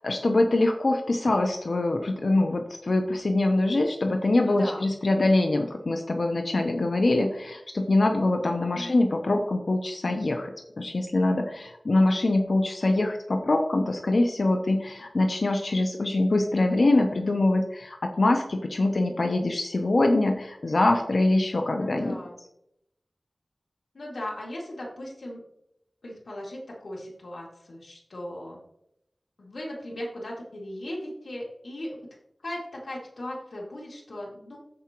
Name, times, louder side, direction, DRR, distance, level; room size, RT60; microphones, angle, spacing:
voice 1, 0.0-22.2, left 2 dB, 70° left, 4 dB, 0.7 m, -24 dB
voice 2, 4.5-4.9 8.7-9.0 21.8-22.4 23.9-25.4 26.0-28.6 29.4-32.0 32.4-34.6, left 1 dB, 90° left, -3 dB, 2.3 m, -38 dB
14.0 x 4.7 x 3.0 m, 0.81 s
wide cardioid pair, 60°, 0 cm